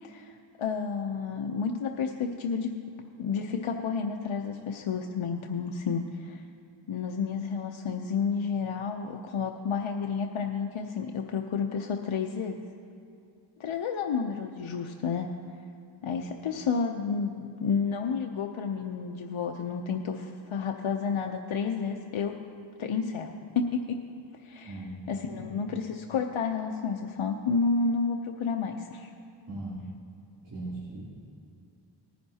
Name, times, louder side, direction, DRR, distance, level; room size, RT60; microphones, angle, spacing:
voice 1, 0.0-2.7 3.2-6.4 6.9-12.6 13.6-15.3 16.0-22.3 22.8-24.0 24.4-29.1, left 5 dB, 75° left, 3 dB, 0.7 m, -31 dB
voice 2, 24.7-25.0 25.3-25.6 29.5-29.8 30.4-31.1, right 1 dB, 40° right, -9 dB, 3.1 m, -38 dB
19.0 x 10.0 x 2.8 m, 2.5 s
cardioid pair, 45°, 48 cm